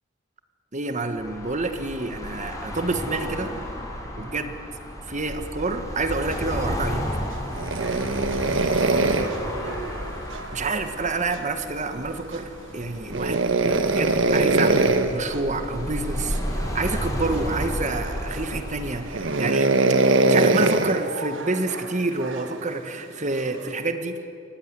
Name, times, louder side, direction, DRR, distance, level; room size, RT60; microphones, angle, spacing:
voice 1, 0.7-3.5 4.1-4.5 5.1-7.1 10.5-24.3, right 3 dB, 40° right, 8 dB, 1.5 m, -28 dB
sound 1, 1.2-19.1, equal, 20° left, 6.1 m, -33 dB
sound 2, 7.5-10.8 13.1-15.2 16.3-16.8 17.3-17.4 18.1-18.6 19.1-22.5 23.4-23.7, right 2 dB, 85° right, 1.4 m, -22 dB
voice 2, 7.7-9.8, right 2 dB, 55° right, 0 dB, 6.1 m, -38 dB
28.0 x 15.5 x 9.7 m, 2.5 s
head